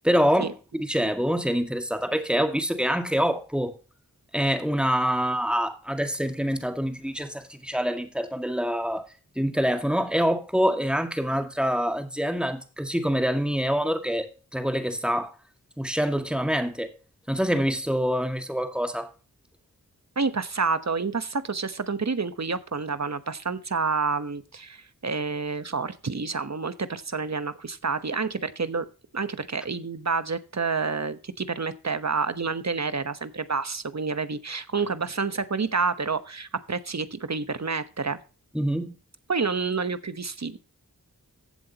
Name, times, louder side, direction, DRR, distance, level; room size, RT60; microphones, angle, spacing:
voice 1, 0.0-3.7 4.3-9.1 9.4-15.3 15.8-16.9 17.3-19.1 38.5-39.0, equal, 5° right, 2.0 m, -26 dB
voice 2, 20.2-28.9 29.1-38.2 39.3-40.6, right 4 dB, 50° right, 1.2 m, -29 dB
15.0 x 7.8 x 2.9 m
cardioid pair, 45°, 35 cm